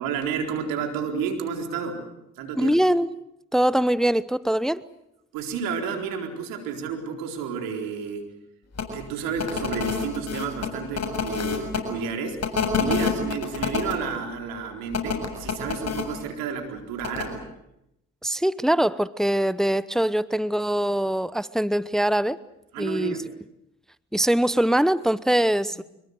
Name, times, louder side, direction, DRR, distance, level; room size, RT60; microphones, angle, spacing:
voice 1, 0.0-2.0 2.4-2.7 5.3-8.3 8.9-17.4 22.7-23.3, right 6 dB, 85° right, 4 dB, 4.2 m, -31 dB
voice 2, 2.6-3.1 3.5-4.8 12.9-13.1 18.2-22.4 22.8-23.1 24.1-25.8, right 1 dB, ahead, 18 dB, 0.9 m, -23 dB
sound 1, 8.7-8.9 9.4-11.8 12.4-13.9 14.9-16.0 17.0-17.2, left 5 dB, 50° left, 7.4 m, -27 dB
25.5 x 22.0 x 8.0 m, 0.84 s
hypercardioid pair, 50°, 33 cm